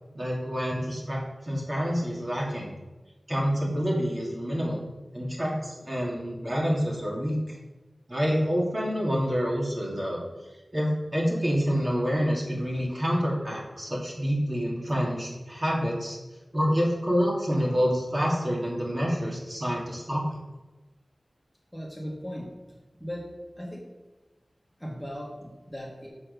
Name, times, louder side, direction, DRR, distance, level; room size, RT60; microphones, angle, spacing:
voice 1, 0.1-1.2 1.4-2.7 3.3-4.8 5.1-7.4 8.1-10.2 10.7-16.2 16.5-20.2, equal, 35° right, -3 dB, 2.3 m, -27 dB
voice 2, 21.7-22.5 23.0-23.3 23.6-23.8 24.8-26.1, equal, 5° left, -3 dB, 2.1 m, -37 dB
7.3 x 6.5 x 5.3 m, 1.1 s
wide cardioid pair, 60°, 0 cm